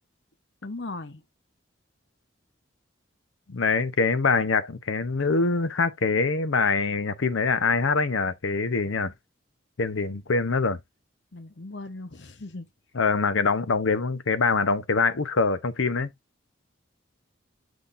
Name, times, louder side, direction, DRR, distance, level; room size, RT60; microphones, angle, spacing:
voice 1, 0.6-1.2 11.3-12.7, left 2 dB, 60° left, 1.0 m, -38 dB
voice 2, 3.5-9.1 9.8-10.8 12.9-16.1, left 4 dB, 90° left, 0.8 m, -24 dB
7.1 x 6.3 x 2.5 m
head